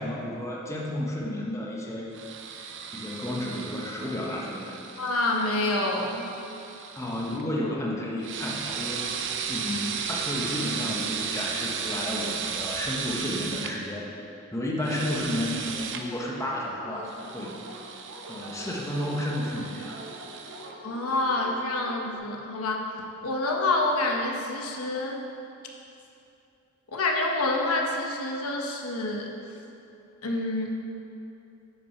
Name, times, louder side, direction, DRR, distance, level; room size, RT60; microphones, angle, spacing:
voice 1, 0.0-2.1 2.9-4.7 6.9-9.0 9.5-14.1 14.5-17.6 18.3-20.0, left 1 dB, 15° left, -3 dB, 1.0 m, -32 dB
sound 1, 2.1-7.4 8.2-13.7 14.8-16.0 17.1-20.7, right 6 dB, 55° right, 0.7 m, -35 dB
voice 2, 5.0-6.3 20.8-25.2 26.9-29.3 30.2-30.8, left 2 dB, 70° left, 0 dB, 1.0 m, -27 dB
Dog, 16.3-22.2, right 1 dB, 80° right, 1.2 m, -44 dB
9.2 x 5.9 x 5.7 m, 2.7 s
head